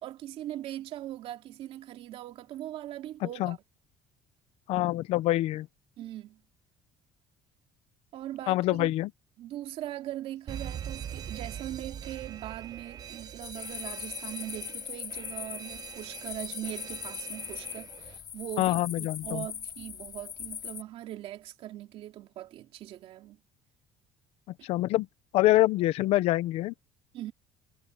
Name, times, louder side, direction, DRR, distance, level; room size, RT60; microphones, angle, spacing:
voice 1, 0.0-3.6 6.0-6.4 8.1-8.9 9.4-23.4 27.1-27.3, right 13 dB, 65° right, 2.7 m, -40 dB
voice 2, 3.2-3.5 4.7-5.7 8.5-9.1 18.6-19.5 24.6-25.1 25.3-26.7, left 16 dB, 75° left, 0.8 m, -25 dB
Alarm, 10.5-18.2, right 9 dB, 35° right, 1.3 m, -42 dB
sound 1, 13.4-20.8, left 7 dB, 40° left, 5.0 m, -40 dB
cardioid pair, 140°, 11 cm